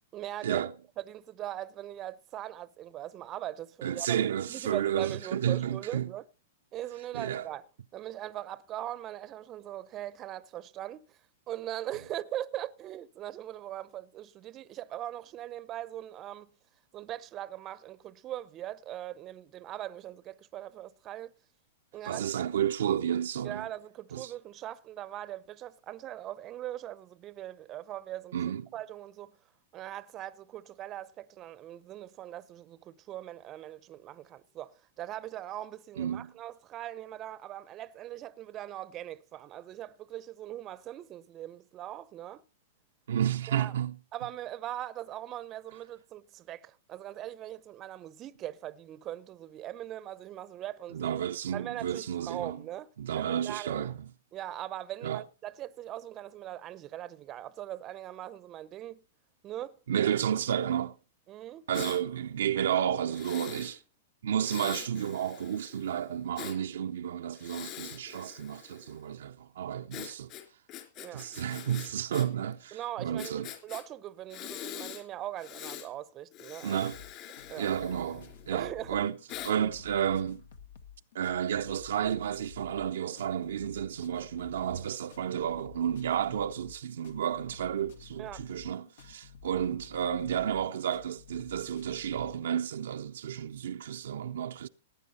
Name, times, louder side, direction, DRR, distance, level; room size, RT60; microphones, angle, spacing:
voice 1, 0.1-0.6 1.0-4.1 4.5-6.2 6.7-7.7 7.9-11.2 11.5-16.5 16.9-21.3 21.9-22.3 23.4-29.4 29.7-42.4 43.5-43.7 44.1-51.2 51.5-53.9 54.3-59.0 59.4-60.1 61.3-61.7 71.0-71.3 72.7-76.8 77.5-77.7 78.5-79.0 88.2-88.4, right 13 dB, 30° right, 0.7 m, -41 dB
voice 2, 3.8-6.1 7.1-7.5 22.0-23.7 24.1-24.3 28.3-28.7 36.0-36.3 43.1-43.9 50.9-52.6 53.0-54.1 55.0-55.2 59.9-61.0 61.7-63.8 64.2-70.3 71.1-73.5 76.6-77.0 77.6-79.2 79.4-80.4 81.1-94.7, right 9 dB, 70° right, 0.6 m, -31 dB
Breathing, 61.7-62.0 63.1-63.7 64.4-66.6 67.3-69.0 69.9-72.3 72.5-72.6 73.2-73.8 74.3-75.0 75.4-75.9 76.3-78.5 79.3-79.5, left 12 dB, 40° left, 3.5 m, -44 dB
sound 1, 76.9-92.4, left 6 dB, 70° left, 1.6 m, -52 dB
18.0 x 9.2 x 4.2 m
hypercardioid pair, 110°, 0 cm